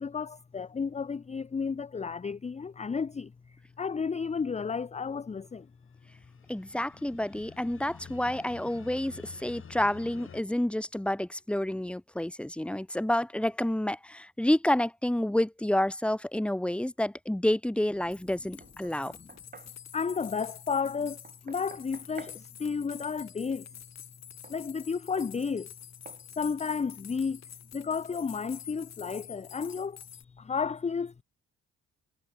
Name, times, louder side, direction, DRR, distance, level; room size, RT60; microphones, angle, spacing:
voice 1, 0.0-5.7 19.2-19.3 19.9-21.2 21.4-23.7 24.5-25.7 26.4-27.4 27.7-30.0 30.4-31.2, left 5 dB, 20° left, 0.7 m, -32 dB
sound 1, 5.9-10.4, left 6 dB, 45° left, 5.9 m, -49 dB
voice 2, 6.5-19.2, left 1 dB, 5° left, 1.4 m, -29 dB
sound 2, 17.8-17.9 18.1-30.2, left 9 dB, 60° left, 4.4 m, -48 dB
Knock, 18.6-19.8 21.2-22.4 24.4-24.6 25.2-25.4 26.1-26.3, right 5 dB, 30° right, 1.7 m, -50 dB
cardioid pair, 90°, 30 cm